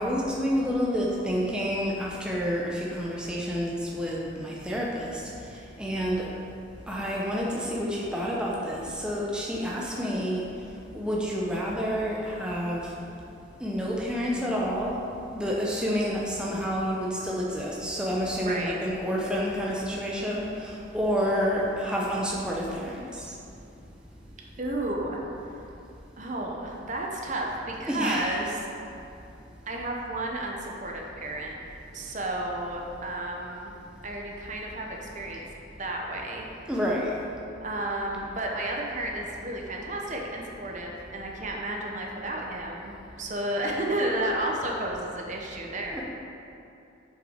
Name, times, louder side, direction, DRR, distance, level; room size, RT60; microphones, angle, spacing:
voice 1, 0.0-5.2 5.8-6.2 6.9-10.5 10.9-12.9 13.6-15.0 15.3-23.3 27.9-28.3 36.7-37.1 45.9-46.0, equal, 5° right, -4 dB, 0.7 m, -29 dB
voice 2, 9.7-10.2 18.4-18.8 24.6-25.7 26.2-28.6 29.7-31.5 31.9-33.7 34.0-35.4 35.8-36.5 37.6-46.0, right 1 dB, 40° right, 0 dB, 0.8 m, -32 dB
7.6 x 5.5 x 4.4 m, 2.7 s
head